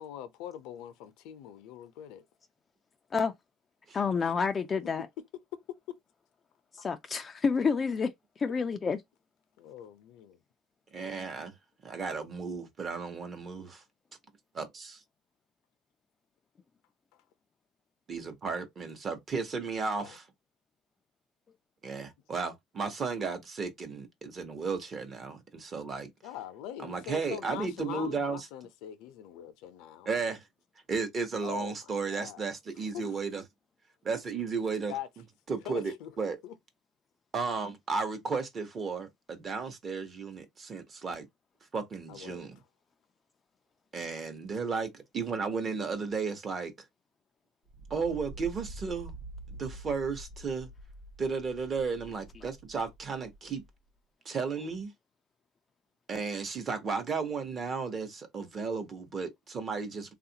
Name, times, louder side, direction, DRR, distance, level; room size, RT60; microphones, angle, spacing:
voice 1, 0.0-2.2 4.2-4.3 9.6-10.4 20.0-20.2 26.2-30.1 31.4-32.4 32.9-33.2 34.9-35.1 35.6-36.1 36.4-36.5 42.1-42.5 54.6-54.7, left 10 dB, 80° left, 0.6 m, -43 dB
voice 2, 3.9-5.1 6.7-9.0, left 5 dB, 25° left, 0.3 m, -29 dB
voice 3, 10.9-11.6 11.8-13.8 14.5-15.0 18.1-20.3 21.8-26.1 26.8-28.5 30.0-30.4 30.9-33.4 34.0-34.9 35.5-36.4 37.3-41.3 41.7-42.6 43.9-46.7 47.9-49.1 49.5-50.7 51.2-53.6 54.2-54.9 56.1-60.1, right 4 dB, 35° right, 0.9 m, -34 dB
sound 1, 47.7-53.7, right 2 dB, 80° right, 0.7 m, -47 dB
3.4 x 2.4 x 2.8 m
cardioid pair, 135°, 0 cm